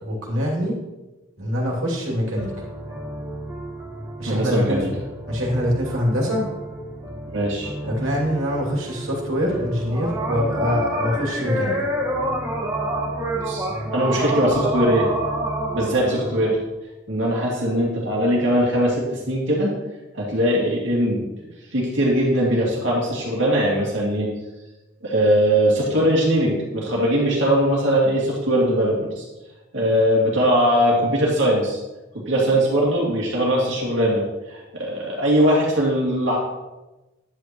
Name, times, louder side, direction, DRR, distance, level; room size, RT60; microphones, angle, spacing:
voice 1, 0.0-0.8 1.4-2.5 4.2-4.9 5.3-6.5 7.8-11.7, equal, 80° right, -2 dB, 2.7 m, -24 dB
sound 1, 2.3-16.6, right 1 dB, 15° right, 1.5 m, -29 dB
voice 2, 4.3-4.9 7.3-7.7 13.4-15.1 15.7-16.6 17.1-19.7 20.1-21.3 21.7-24.3 25.0-29.2 29.7-31.8 32.1-36.4, equal, 65° right, -4 dB, 2.6 m, -20 dB
10.5 x 8.6 x 3.1 m, 1.1 s
head